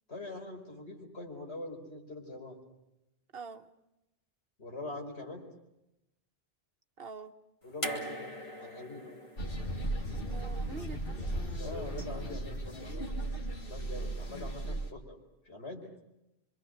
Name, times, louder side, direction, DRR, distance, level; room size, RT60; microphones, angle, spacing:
voice 1, 0.1-2.6 4.6-5.4 7.6-9.2 11.6-15.2 15.5-15.8, left 2 dB, 80° left, 1 dB, 5.3 m, -44 dB
voice 2, 3.3-3.7 7.0-7.3 10.1-11.7, right 4 dB, 60° right, 7 dB, 1.3 m, -46 dB
sound 1, 7.8-11.0 12.2-12.3, equal, 30° left, 2.2 m, -42 dB
sound 2, 9.4-14.9, right 1 dB, 55° left, 2.2 m, -36 dB
25.5 x 25.0 x 6.5 m, 0.90 s
omnidirectional pair, 1.1 m